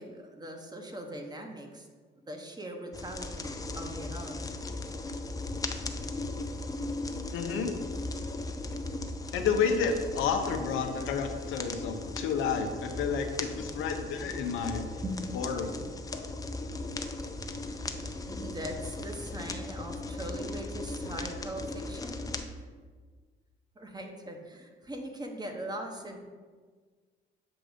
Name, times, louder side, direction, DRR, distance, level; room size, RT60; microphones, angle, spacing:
voice 1, 0.0-1.9 2.3-4.5 15.0-15.4 17.6-22.3 23.7-26.2, right 1 dB, 20° right, 3 dB, 0.9 m, -41 dB
sound 1, 2.9-22.4, left 2 dB, 20° left, 0.5 m, -37 dB
voice 2, 7.3-7.7 9.3-14.9 15.3-15.7 16.1-16.3, left 6 dB, 85° left, 5 dB, 0.7 m, -30 dB
7.7 x 2.6 x 4.9 m, 1.5 s
cardioid pair, 90°, 20 cm